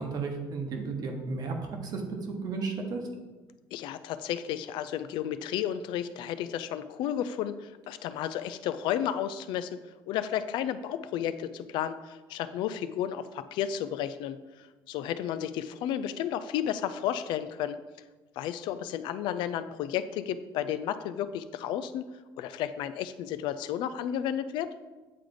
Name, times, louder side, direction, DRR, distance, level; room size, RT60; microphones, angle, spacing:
voice 1, 0.0-1.6 1.8-2.0 2.4-3.0, right 4 dB, 55° right, 3 dB, 1.1 m, -33 dB
voice 2, 3.7-9.8 10.1-17.8 18.4-22.1 22.4-24.7, left 10 dB, 75° left, 12 dB, 0.4 m, -32 dB
8.6 x 3.3 x 3.9 m, 1.2 s
cardioid pair, 105°, 8 cm